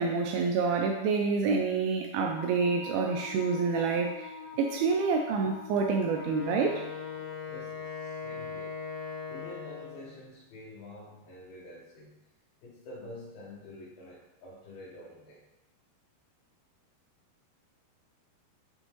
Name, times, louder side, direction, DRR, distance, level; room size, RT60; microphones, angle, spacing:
voice 1, 0.0-4.3 4.6-6.8, right 4 dB, 85° right, 2 dB, 2.2 m, -28 dB
Wind instrument woodwind instrument, 2.3-7.5, left 5 dB, 90° left, 3.1 m, -45 dB
Wind instrument woodwind instrument 2, 6.1-10.1, left 6 dB, 55° left, 3.0 m, -39 dB
voice 2, 7.5-8.8 9.3-12.2 12.6-15.5, left 1 dB, 70° left, -8 dB, 2.9 m, -48 dB
6.5 x 5.4 x 3.0 m, 0.93 s
omnidirectional pair, 4.8 m